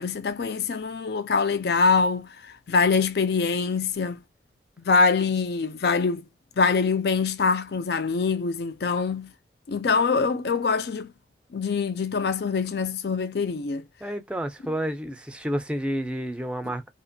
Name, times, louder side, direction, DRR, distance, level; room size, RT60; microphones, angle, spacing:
voice 1, 0.0-4.2 4.8-6.2 6.6-9.3 9.7-11.1 11.5-13.8 14.6-14.7, left 4 dB, 60° left, 0.4 m, -24 dB
voice 2, 14.0-16.9, equal, 5° right, 0.4 m, -30 dB
2.8 x 2.5 x 2.5 m
head